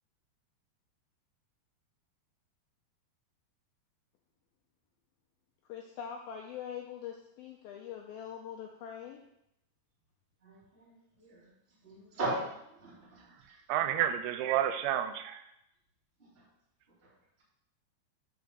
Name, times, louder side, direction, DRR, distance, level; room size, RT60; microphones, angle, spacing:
voice 1, 5.7-9.2, left 8 dB, 85° left, 0 dB, 2.1 m, -43 dB
voice 2, 10.4-11.5 11.8-13.6 16.2-16.3 17.0-17.1, right 2 dB, 15° right, -8 dB, 2.1 m, -39 dB
voice 3, 13.5-15.5, right 11 dB, 90° right, 9 dB, 2.8 m, -30 dB
5.9 x 5.0 x 6.7 m, 0.80 s
omnidirectional pair, 5.1 m